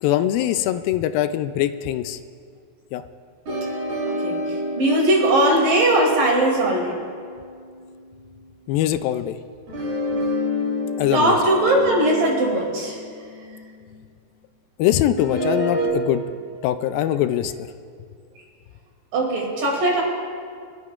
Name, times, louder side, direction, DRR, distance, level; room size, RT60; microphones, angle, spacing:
voice 1, 0.0-2.2 2.9-3.0 8.7-9.4 11.0-11.4 14.8-16.2 16.6-17.5, left 12 dB, 85° left, 10 dB, 2.3 m, -22 dB
sound 1, 3.5-8.0 9.7-13.8 15.2-15.9, left 1 dB, 85° right, 5.2 m, -29 dB
voice 2, 4.8-6.9 11.1-13.0 19.1-20.0, right 1 dB, 65° right, -3 dB, 4.3 m, -19 dB
23.5 x 12.0 x 2.4 m, 2.2 s
omnidirectional pair, 4.2 m